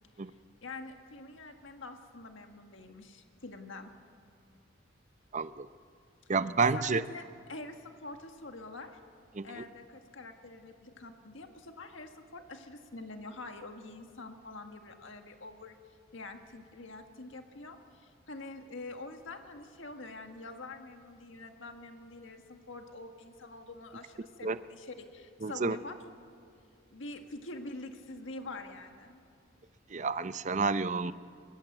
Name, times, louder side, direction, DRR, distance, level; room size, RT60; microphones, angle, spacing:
voice 1, 0.6-3.9 6.7-9.0 9.4-15.8 16.1-26.0 26.9-29.2, left 2 dB, 70° left, 5 dB, 1.7 m, -46 dB
voice 2, 5.3-5.7 6.3-7.0 9.3-9.6 24.4-24.6 25.4-25.8 29.9-31.1, right 4 dB, 40° right, 13 dB, 0.6 m, -30 dB
24.0 x 22.0 x 7.9 m, 2.4 s
head